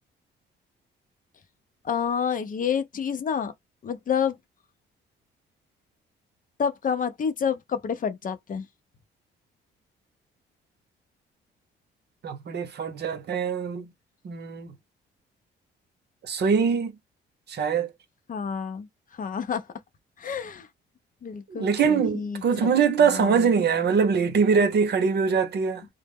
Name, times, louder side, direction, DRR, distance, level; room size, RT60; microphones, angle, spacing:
voice 1, 1.8-3.5 3.8-4.3 6.6-8.6 18.3-18.9 19.2-19.6 20.2-20.7 21.2-22.4 23.0-23.5, left 7 dB, 45° left, 0.6 m, -28 dB
voice 2, 12.2-13.9 14.2-14.7 16.3-16.9 17.5-17.9 21.5-25.9, right 6 dB, 55° right, 0.7 m, -23 dB
2.0 x 2.0 x 3.4 m
cardioid pair, 90°, 20 cm